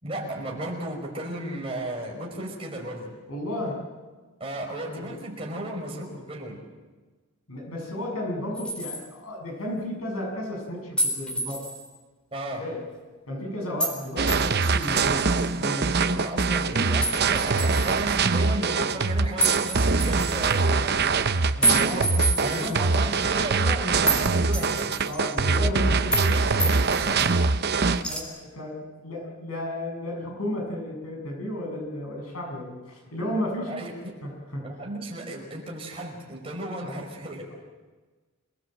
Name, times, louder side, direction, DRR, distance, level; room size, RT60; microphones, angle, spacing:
voice 1, 0.0-3.1 4.4-6.6 12.3-12.6 15.8-24.9 26.0-27.3 33.7-34.2 34.6-37.4, right 1 dB, 25° right, 0 dB, 5.4 m, -34 dB
voice 2, 3.3-3.8 4.6-5.1 7.5-11.7 12.6-12.9 13.3-16.0 21.5-21.8 22.4-22.9 25.0-27.3 28.0-33.7 34.2-34.8 36.8-37.0, left 1 dB, 75° left, 0 dB, 7.4 m, -33 dB
sound 1, 8.5-9.0 11.0-11.8 13.8-14.0 14.3-15.5 17.0-18.0 19.4-20.6 21.6-22.7 23.1-23.2 24.1-24.3 24.5-25.4 26.1-26.3 26.6-27.3 28.0-28.2, right 1 dB, 5° left, 3.9 m, -28 dB
sound 2, 14.2-28.0, right 4 dB, 45° right, 0.8 m, -23 dB
27.5 x 19.0 x 7.9 m, 1.4 s
head